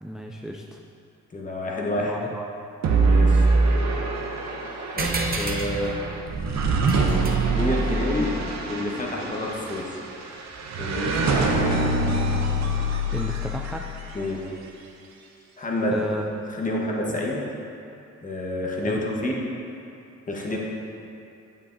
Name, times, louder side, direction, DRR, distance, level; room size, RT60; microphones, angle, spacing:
voice 1, 0.0-0.8 2.0-2.5 11.3-11.5 13.1-13.9 15.9-16.3 17.1-17.2 18.8-19.0, right 1 dB, ahead, 0 dB, 0.3 m, -33 dB
voice 2, 1.3-2.1 3.1-3.5 5.0-6.1 7.5-8.4 8.7-10.0 10.8-12.0 14.1-14.5 15.6-16.1 16.5-17.5 18.2-19.4 20.3-20.6, left 1 dB, 25° left, -2 dB, 1.3 m, -28 dB
sound 1, 2.8-14.1, right 2 dB, 65° right, 0.9 m, -24 dB
sound 2, 5.0-9.9, right 3 dB, 30° right, 0.9 m, -33 dB
8.5 x 7.5 x 2.7 m, 2.7 s
cardioid pair, 90°, 30 cm